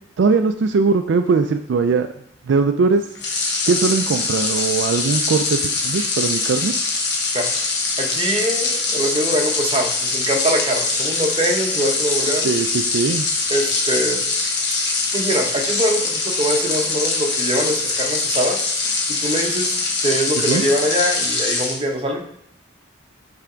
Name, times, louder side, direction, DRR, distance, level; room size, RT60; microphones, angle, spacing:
voice 1, 0.2-2.1 2.5-3.0 3.7-6.7 12.4-13.3 20.5-20.6, right 4 dB, 70° right, 7 dB, 0.4 m, -20 dB
sound 1, 3.1-21.8, left 3 dB, 65° left, 1.3 m, -23 dB
voice 2, 8.0-12.5 13.5-14.3 15.1-18.6 19.1-19.8 20.0-22.2, right 1 dB, 30° right, 2 dB, 0.9 m, -23 dB
5.7 x 3.5 x 5.0 m, 0.72 s
head